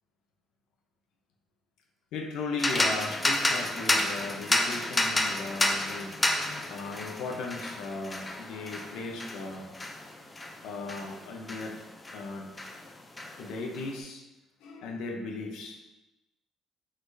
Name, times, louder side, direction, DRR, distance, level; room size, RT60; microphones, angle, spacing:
voice 1, 2.1-6.1 6.7-9.7 10.6-11.8 12.1-12.5 13.4-14.2 14.6-15.8, left 3 dB, 85° left, 2 dB, 0.7 m, -37 dB
sound 1, 2.6-12.3 12.6-13.8, left 1 dB, 15° left, 0.4 m, -30 dB
4.7 x 4.2 x 2.6 m, 1.0 s
cardioid pair, 140°, 0 cm